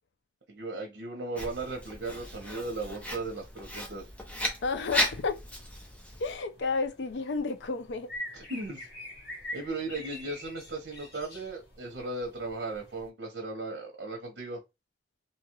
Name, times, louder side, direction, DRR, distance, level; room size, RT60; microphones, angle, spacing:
voice 1, 0.5-4.1 8.3-8.9 9.5-14.6, right 2 dB, 75° right, 0.8 m, -37 dB
Writing, 1.4-6.3, equal, 10° left, 0.6 m, -35 dB
voice 2, 4.6-5.4 6.2-8.1, left 4 dB, 85° left, 0.5 m, -31 dB
sound 1, 6.2-13.1, left 1 dB, 65° left, 1.4 m, -45 dB
2.8 x 2.3 x 2.9 m
head